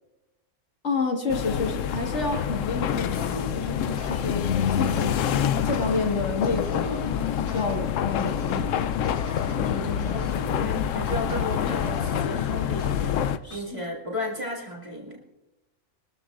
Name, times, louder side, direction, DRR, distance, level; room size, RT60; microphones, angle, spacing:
voice 1, 0.8-4.5 4.8-5.1 5.6-7.1 7.5-8.7 9.6-10.4 13.4-13.8, left 4 dB, 65° left, 2 dB, 2.0 m, -29 dB
sound 1, 1.3-13.4, left 9 dB, 85° left, 1.0 m, -27 dB
sound 2, 2.9-13.6, left 4 dB, 45° left, 1.9 m, -38 dB
voice 2, 9.6-15.2, left 1 dB, 25° right, -3 dB, 2.2 m, -35 dB
23.5 x 13.0 x 2.5 m, 1.0 s
omnidirectional pair, 1.3 m